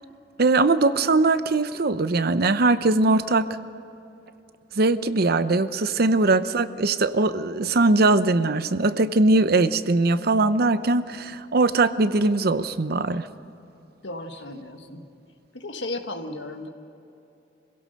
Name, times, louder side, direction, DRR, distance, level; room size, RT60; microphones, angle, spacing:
voice 1, 0.4-3.5 4.8-13.3, right 2 dB, 60° right, 13 dB, 0.7 m, -21 dB
voice 2, 14.0-15.0 15.5-16.7, left 2 dB, 80° left, 6 dB, 1.6 m, -34 dB
26.0 x 16.5 x 6.6 m, 2.9 s
head